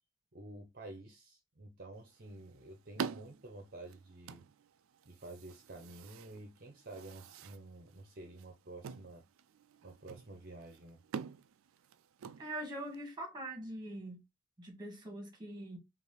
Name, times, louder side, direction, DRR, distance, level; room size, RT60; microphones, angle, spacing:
voice 1, 0.3-4.4 5.0-9.2 9.8-11.0, right 2 dB, 45° right, 0.8 m, -50 dB
sound 1, 2.0-13.0, right 6 dB, 90° right, 0.4 m, -47 dB
voice 2, 12.4-14.2 14.6-15.8, right 1 dB, 20° right, 1.6 m, -43 dB
5.3 x 2.6 x 3.2 m
head